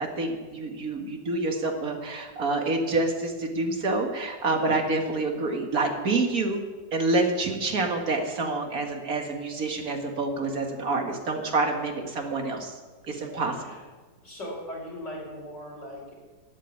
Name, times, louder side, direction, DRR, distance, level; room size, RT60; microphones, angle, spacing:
voice 1, 0.0-6.6 6.9-12.8 13.1-13.5, right 3 dB, 55° right, 3 dB, 2.2 m, -27 dB
voice 2, 13.2-13.8 14.2-16.1, equal, 90° left, -6 dB, 5.5 m, -39 dB
12.0 x 8.6 x 9.5 m, 1.3 s
omnidirectional pair, 1.8 m